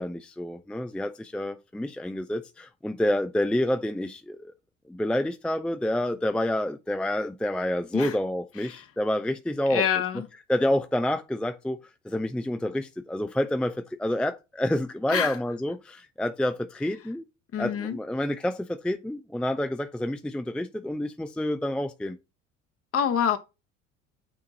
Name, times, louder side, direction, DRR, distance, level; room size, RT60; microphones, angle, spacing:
voice 1, 0.0-4.5 4.9-9.9 10.5-11.8 12.0-17.2 17.6-22.2, left 1 dB, 5° left, 0.5 m, -28 dB
voice 2, 9.7-10.3 15.1-15.4 17.5-18.0 22.9-23.4, left 8 dB, 35° left, 1.3 m, -26 dB
8.8 x 3.6 x 2.9 m
figure-of-eight pair, 60°, 39 cm